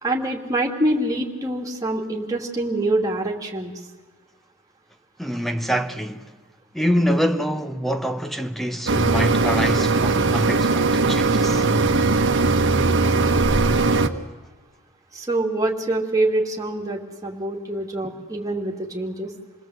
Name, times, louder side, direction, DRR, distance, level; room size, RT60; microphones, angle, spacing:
voice 1, 0.0-3.7 15.1-19.3, right 1 dB, 15° right, 2.5 m, -25 dB
voice 2, 5.2-6.3 6.7-11.7, equal, ahead, 1.0 m, -25 dB
sound 1, 8.9-14.1, right 3 dB, 55° right, 1.3 m, -19 dB
28.0 x 20.0 x 8.0 m
head